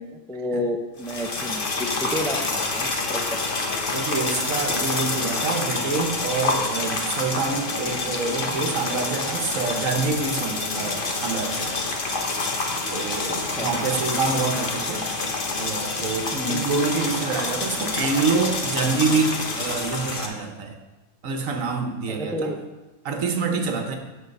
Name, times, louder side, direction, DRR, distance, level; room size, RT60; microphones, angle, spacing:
voice 1, 0.0-3.4 13.6-13.7 16.3-16.7 22.1-22.6, left 1 dB, 5° left, 3 dB, 0.5 m, -30 dB
sound 1, 1.0-20.3, left 3 dB, 45° left, 1.1 m, -27 dB
voice 2, 3.9-11.7 12.9-15.1 15.5-20.8 21.2-22.5 23.0-24.0, right 4 dB, 85° right, 4 dB, 1.5 m, -26 dB
12.5 x 4.4 x 5.3 m, 1.1 s
omnidirectional pair, 1.3 m